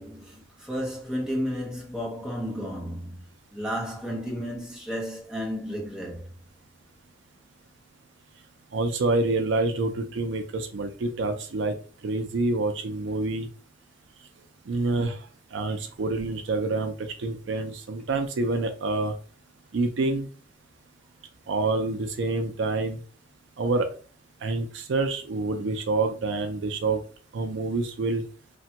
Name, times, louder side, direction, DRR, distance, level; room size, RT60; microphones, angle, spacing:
voice 1, 0.0-6.3, equal, 5° right, 0.8 m, -33 dB
voice 2, 8.7-11.8 12.0-13.5 14.7-19.2 19.7-20.3 21.5-23.0 23.6-23.9 24.4-27.0 27.3-28.2, right 3 dB, 70° right, 0.4 m, -27 dB
3.3 x 2.2 x 2.8 m
head